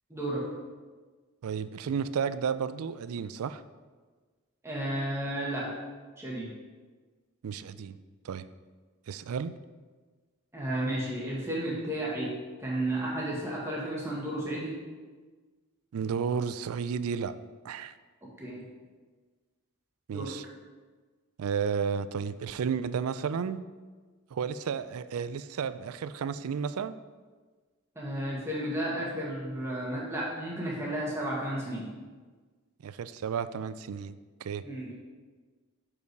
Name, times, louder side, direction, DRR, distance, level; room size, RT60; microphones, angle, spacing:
voice 1, 0.1-0.5 4.6-5.7 6.2-6.5 10.5-12.3 12.6-14.8 18.4-18.6 20.1-20.3 27.9-31.9 34.6-34.9, right 1 dB, 10° right, -5 dB, 1.6 m, -33 dB
voice 2, 1.4-3.6 7.4-8.0 8.2-8.4 9.1-9.5 15.9-17.3 17.6-17.9 20.1-20.4 21.4-23.6 24.3-27.0 32.8-34.2 34.4-34.6, right 6 dB, 80° right, 14 dB, 0.4 m, -32 dB
6.9 x 5.5 x 4.6 m, 1.4 s
head